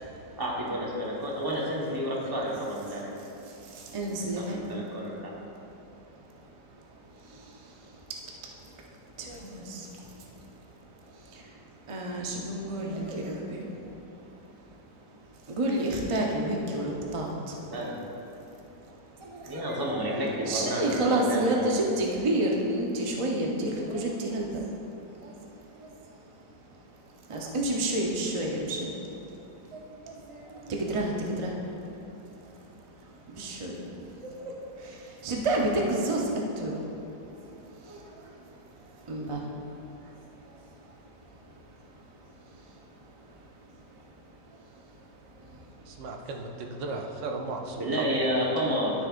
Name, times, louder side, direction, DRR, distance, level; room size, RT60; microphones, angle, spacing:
voice 1, 0.4-3.1 4.1-5.3 17.6-18.0 19.5-21.9 47.8-48.9, equal, 15° right, -4 dB, 1.0 m, -30 dB
voice 2, 3.5-4.6 7.3-7.5 9.2-9.9 11.3-11.4 11.9-13.7 15.5-17.6 19.2-19.6 19.9-20.0 20.5-24.6 25.2-25.4 25.8-25.9 27.3-28.9 29.7-31.6 33.3-33.8 34.2-36.3 36.6-36.8 37.2-37.4 37.8-38.3 39.1-40.1, right 1 dB, 45° right, -1 dB, 0.4 m, -30 dB
voice 3, 45.9-48.1, right 3 dB, 85° right, 2 dB, 1.5 m, -36 dB
13.0 x 6.7 x 2.5 m, 2.8 s
omnidirectional pair, 1.9 m